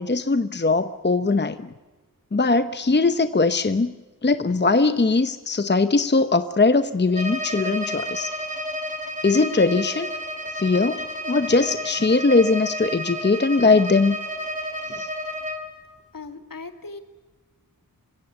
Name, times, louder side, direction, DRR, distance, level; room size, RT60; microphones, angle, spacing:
voice 1, 0.0-1.7 2.3-3.9 4.2-8.3 9.2-10.1 10.6-14.2 14.9-15.1, left 3 dB, 30° left, 11 dB, 0.9 m, -20 dB
Bowed string instrument, 7.1-15.7, equal, 20° right, 3.8 m, -31 dB
voice 2, 16.1-17.0, left 3 dB, 70° left, 7 dB, 2.2 m, -38 dB
26.5 x 16.0 x 9.3 m, 1.3 s
wide cardioid pair, 75°, 35 cm